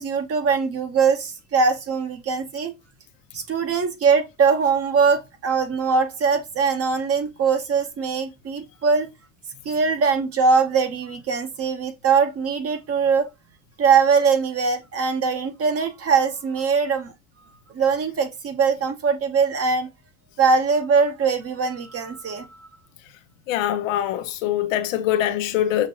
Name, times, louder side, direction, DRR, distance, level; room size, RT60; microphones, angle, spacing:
voice 1, 0.0-2.7 3.3-9.1 9.6-13.3 13.8-17.1 17.7-19.9 20.4-22.7, right 5 dB, 40° right, 1.0 m, -21 dB
voice 2, 23.5-25.9, left 11 dB, 90° left, 0.7 m, -23 dB
6.0 x 2.6 x 2.9 m
supercardioid pair, 85°, 38 cm